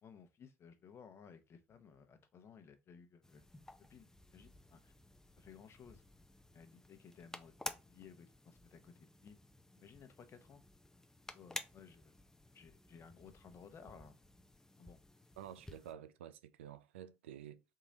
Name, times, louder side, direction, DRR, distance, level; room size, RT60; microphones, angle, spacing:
voice 1, 0.0-3.4 3.9-4.9 5.4-6.0 6.5-9.4 9.7-10.6 11.3-12.1 12.5-14.1 14.8-15.0, left 6 dB, 45° left, 0.9 m, -58 dB
sound 1, 3.2-15.9, left 1 dB, 10° left, 0.5 m, -53 dB
voice 2, 15.4-17.6, right 10 dB, 80° right, 0.4 m, -51 dB
3.7 x 3.1 x 3.9 m
hypercardioid pair, 60°, 6 cm